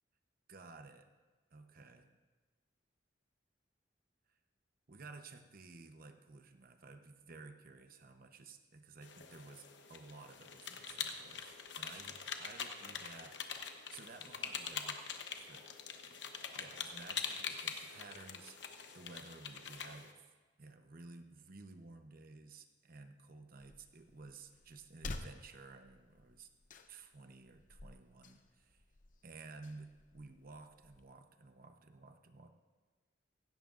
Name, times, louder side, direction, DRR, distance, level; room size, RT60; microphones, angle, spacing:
voice 1, 0.5-1.1 1.5-2.1 4.3-4.4 4.9-13.4 13.9-15.0 15.4-15.7 16.5-20.2 20.6-26.5 26.9-28.8 29.2-32.5, right 3 dB, 55° right, 7 dB, 0.9 m, -54 dB
sound 1, 9.0-20.1, left 6 dB, 70° left, 1.0 m, -44 dB
sound 2, 23.6-31.1, left 2 dB, 45° left, 0.8 m, -52 dB
16.5 x 16.0 x 2.6 m, 1.3 s
head